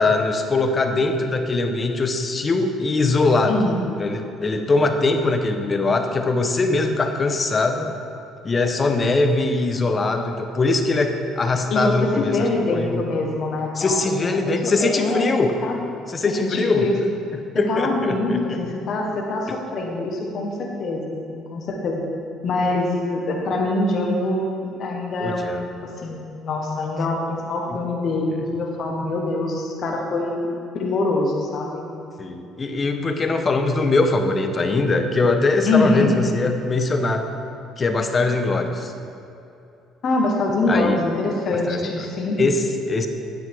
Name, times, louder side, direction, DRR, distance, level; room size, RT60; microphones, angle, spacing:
voice 1, 0.0-3.6 4.0-7.9 8.4-12.5 12.7-13.1 13.8-15.5 16.1-16.9 17.5-18.6 25.2-25.7 27.7-27.8 32.2-37.2 37.8-38.9 40.7-41.0 41.7-41.9 42.4-43.1, left 3 dB, 35° left, 6 dB, 0.9 m, -21 dB
voice 2, 3.5-3.8 11.7-15.3 15.6-15.8 16.2-17.0 17.7-22.0 22.4-30.5 30.7-31.9 35.7-36.1 40.0-42.4, left 2 dB, 55° left, -1 dB, 1.3 m, -24 dB
9.4 x 9.1 x 3.6 m, 2.7 s
supercardioid pair, 80°, 0 cm